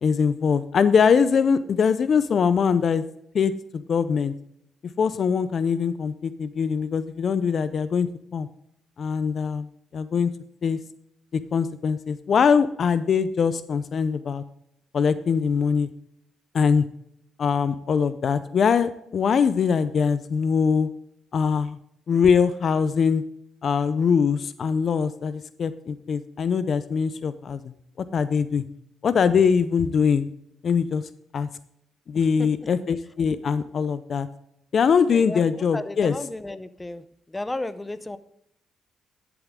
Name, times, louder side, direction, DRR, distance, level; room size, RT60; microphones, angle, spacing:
voice 1, 0.0-3.0 3.3-4.3 5.0-8.5 9.0-10.3 10.6-10.8 11.5-14.4 14.9-15.9 16.5-16.8 17.4-20.9 21.3-21.8 22.1-23.2 23.6-27.6 28.0-28.6 29.0-30.3 30.6-31.0 31.3-31.5 32.1-34.3 34.7-36.1, left 6 dB, 50° left, 14 dB, 0.5 m, -22 dB
voice 2, 35.7-37.0 37.3-38.2, left 2 dB, 15° left, 13 dB, 0.7 m, -33 dB
11.5 x 7.2 x 3.6 m, 0.75 s
cardioid pair, 90°, 0 cm